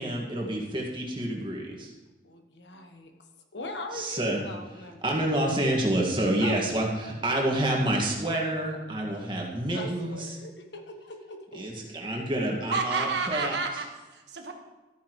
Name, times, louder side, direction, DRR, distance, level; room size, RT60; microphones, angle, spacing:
voice 1, 0.0-1.9 3.9-4.4 5.0-10.4 11.5-13.6, right 1 dB, 25° right, -1 dB, 1.9 m, -28 dB
voice 2, 2.2-3.1 3.5-5.1 6.4-7.0 9.1-9.3 9.7-11.9, left 2 dB, 90° left, 4 dB, 1.3 m, -41 dB
voice 3, 12.7-14.5, right 4 dB, 85° right, 3 dB, 1.5 m, -30 dB
13.5 x 9.5 x 3.2 m, 1.2 s
head